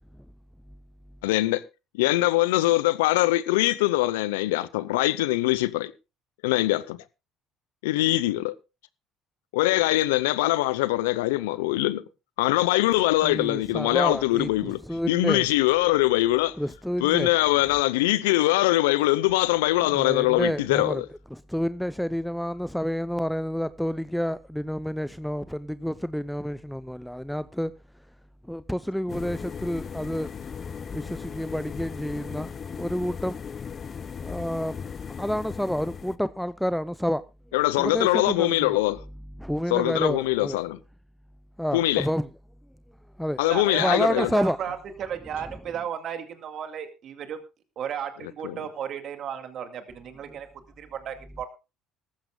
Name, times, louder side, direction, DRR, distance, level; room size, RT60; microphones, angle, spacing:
voice 1, 1.2-1.6 2.0-5.9 6.4-7.0 7.8-8.5 9.5-12.0 12.4-16.5 17.0-21.1 37.5-39.0 39.7-40.8 41.7-42.1 43.4-44.4 48.4-48.6, left 17 dB, 80° left, 0.7 m, -23 dB
voice 2, 13.2-15.5 16.6-17.3 19.9-21.0 21.3-27.7 28.5-30.3 30.9-32.5 32.8-33.4 34.2-34.8 35.2-37.2 37.8-38.7 39.4-40.6 41.6-42.3 43.2-43.4 43.8-44.6, equal, ahead, 0.6 m, -29 dB
sound 1, 29.1-36.2, left 6 dB, 40° left, 0.7 m, -37 dB
voice 3, 43.4-47.4 47.8-50.5 50.8-51.5, right 8 dB, 55° right, 2.3 m, -34 dB
19.0 x 14.5 x 2.3 m
hypercardioid pair, 60°, 0 cm